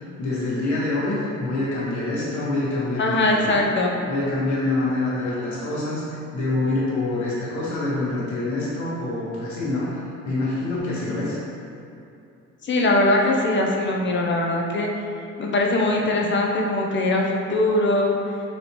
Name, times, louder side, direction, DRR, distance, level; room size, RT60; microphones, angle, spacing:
voice 1, 0.2-3.7 4.1-6.0 6.3-11.4, left 2 dB, 65° left, -8 dB, 1.3 m, -26 dB
voice 2, 3.0-4.0 12.6-14.9 15.4-18.2, left 2 dB, 40° left, 0 dB, 0.6 m, -21 dB
4.2 x 3.2 x 2.9 m, 2.6 s
cardioid pair, 90°, 30 cm